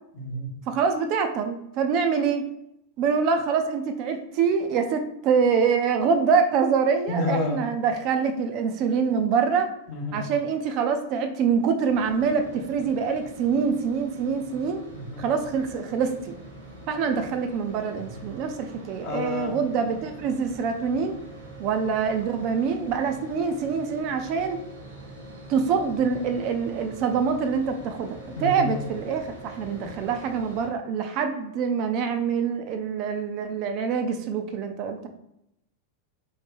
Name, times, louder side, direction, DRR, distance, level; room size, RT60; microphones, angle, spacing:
voice 1, 0.2-0.5 7.1-7.6 9.9-10.2 14.9-15.2 18.1-18.3 19.0-19.6 28.3-28.7, left 1 dB, 40° left, 2 dB, 0.7 m, -29 dB
voice 2, 0.7-2.4 3.0-9.7 10.1-14.8 15.2-16.4 16.9-21.2 21.6-24.6 25.5-35.1, right 6 dB, 40° right, 6 dB, 0.3 m, -25 dB
sound 1, 11.9-30.7, right 1 dB, 75° right, 1.2 m, -44 dB
3.0 x 2.1 x 3.6 m, 0.80 s
figure-of-eight pair, 90°, 0 cm